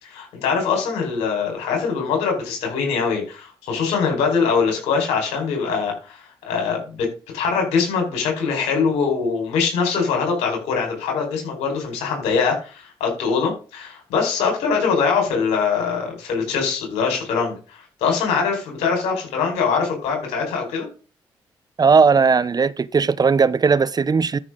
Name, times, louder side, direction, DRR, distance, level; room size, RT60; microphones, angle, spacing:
voice 1, 0.0-7.1 7.3-20.9, left 5 dB, 90° left, 4.8 m, -23 dB
voice 2, 21.8-24.4, right 5 dB, 40° right, 0.7 m, -17 dB
13.0 x 6.1 x 3.8 m
supercardioid pair, 50°, 11 cm